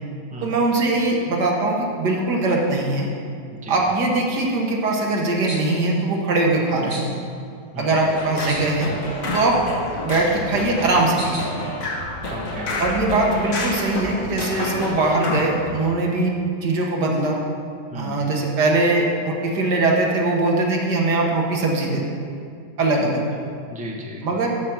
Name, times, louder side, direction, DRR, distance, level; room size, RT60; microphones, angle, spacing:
voice 1, 0.4-3.1 3.7-7.2 7.8-8.9 9.3-9.6 10.0-11.5 12.8-16.3 16.6-17.4 17.9-22.1 22.8-23.2 24.2-24.5, right 2 dB, 70° right, -1 dB, 1.9 m, -21 dB
sound 1, 4.8-5.0 5.5-5.6 5.9-6.6 6.9-7.2 7.9-8.8 9.1-9.9 10.5-11.4, right 1 dB, 40° right, 2.2 m, -38 dB
sound 2, 8.0-15.7, left 2 dB, 50° left, 1.8 m, -29 dB
voice 2, 12.3-12.7 17.9-18.2 23.7-24.3, equal, 5° right, -2 dB, 0.9 m, -35 dB
13.0 x 5.0 x 6.0 m, 2.3 s
omnidirectional pair, 1.9 m